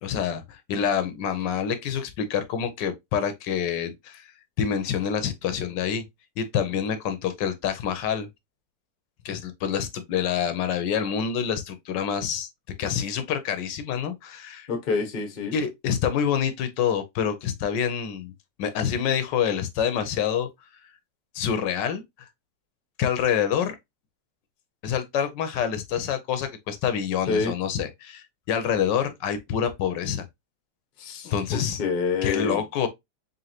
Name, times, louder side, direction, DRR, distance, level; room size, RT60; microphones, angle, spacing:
voice 1, 0.0-4.3 4.6-6.0 6.4-8.3 9.2-12.5 12.8-14.7 15.5-18.3 18.6-20.5 21.3-22.3 23.0-23.8 24.8-30.3 31.2-31.8 32.2-32.9, left 8 dB, 75° left, 1.3 m, -27 dB
voice 2, 14.7-15.5 27.3-27.5 31.0-32.6, left 4 dB, 40° left, 0.8 m, -27 dB
3.8 x 3.6 x 2.8 m
omnidirectional pair, 2.0 m